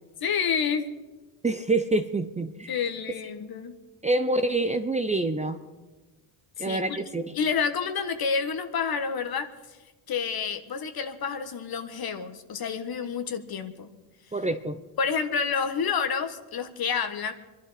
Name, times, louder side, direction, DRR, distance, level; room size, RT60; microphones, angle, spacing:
voice 1, 0.2-0.9 2.7-3.7 6.6-7.0 7.3-9.8 10.1-13.9 15.0-17.3, left 6 dB, 45° left, 9 dB, 1.4 m, -29 dB
voice 2, 1.4-2.7 4.0-5.6 6.6-7.3 14.3-14.8, right 2 dB, 15° right, 8 dB, 0.6 m, -26 dB
25.0 x 11.5 x 4.2 m, 1.2 s
cardioid pair, 105°, 49 cm